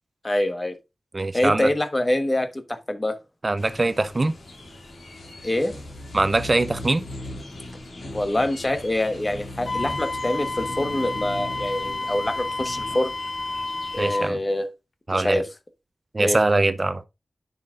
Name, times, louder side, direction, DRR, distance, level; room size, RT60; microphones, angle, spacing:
voice 1, 0.2-0.8 1.3-3.1 5.4-5.7 8.1-13.1 13.9-14.7 15.1-15.4 16.2-16.4, left 1 dB, 30° left, 1.3 m, -25 dB
voice 2, 1.1-1.7 3.4-4.3 6.1-7.0 14.0-14.4 15.1-15.4 16.1-17.0, right 2 dB, 40° right, 0.6 m, -22 dB
sound 1, 3.6-14.3, left 1 dB, 85° left, 2.4 m, -39 dB
Wind instrument woodwind instrument, 9.6-14.3, left 3 dB, 60° left, 0.8 m, -30 dB
10.5 x 5.8 x 2.5 m
cardioid pair, 50°, 0 cm